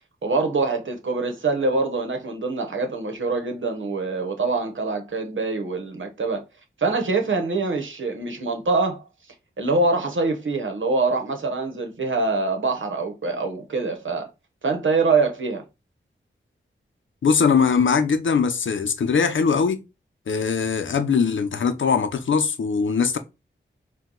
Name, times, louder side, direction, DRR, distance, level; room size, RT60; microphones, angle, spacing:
voice 1, 0.2-6.4 6.8-9.0 9.6-14.3 14.6-15.6, right 3 dB, 75° right, 1.0 m, -24 dB
voice 2, 17.2-19.8 20.3-23.2, left 5 dB, 75° left, 0.6 m, -21 dB
4.5 x 2.3 x 3.8 m
wide cardioid pair, 75°, 20 cm